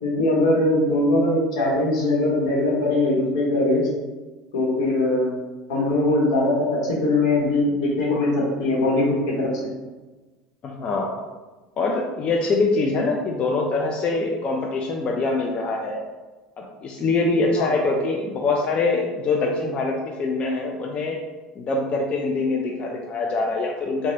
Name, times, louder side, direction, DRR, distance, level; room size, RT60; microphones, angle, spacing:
voice 1, 0.0-3.9 4.5-5.3 5.7-9.7 17.5-17.7, left 2 dB, 80° left, -4 dB, 1.0 m, -21 dB
voice 2, 10.6-11.2 11.8-16.0 16.6-21.2 21.6-24.1, left 3 dB, 40° left, 0 dB, 0.4 m, -24 dB
2.7 x 2.2 x 3.3 m, 1.2 s
hypercardioid pair, 85°, 3 cm